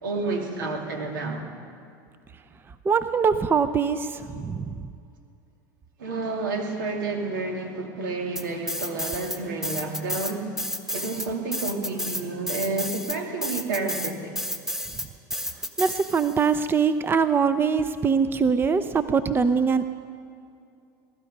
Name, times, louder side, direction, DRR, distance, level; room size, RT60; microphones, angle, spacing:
voice 1, 0.0-1.5 6.0-10.5 10.9-14.3, right 3 dB, 85° right, 2 dB, 2.7 m, -30 dB
voice 2, 2.8-4.8 15.8-19.9, right 6 dB, 20° right, 12 dB, 0.6 m, -23 dB
sound 1, 8.4-9.4 9.6-16.5, equal, 5° right, 1.3 m, -31 dB
19.0 x 13.0 x 5.4 m, 2.4 s
hypercardioid pair, 100°, 10 cm